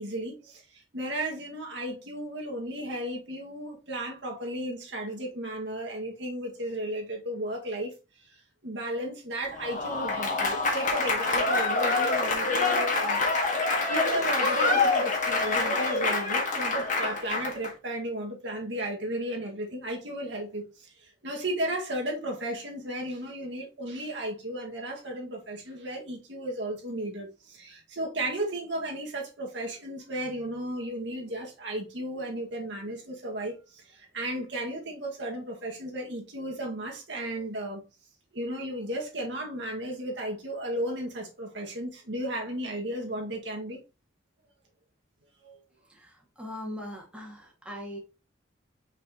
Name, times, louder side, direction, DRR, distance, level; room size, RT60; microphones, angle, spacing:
voice 1, 0.0-7.9 8.6-13.4 13.9-20.9 21.2-37.8 38.3-43.8 45.4-45.6, right 1 dB, 65° right, 1.9 m, -34 dB
Applause / Crowd, 9.5-17.7, left 3 dB, 40° left, 1.7 m, -26 dB
voice 2, 45.9-48.0, left 1 dB, 5° right, 2.0 m, -40 dB
6.2 x 5.5 x 3.0 m
head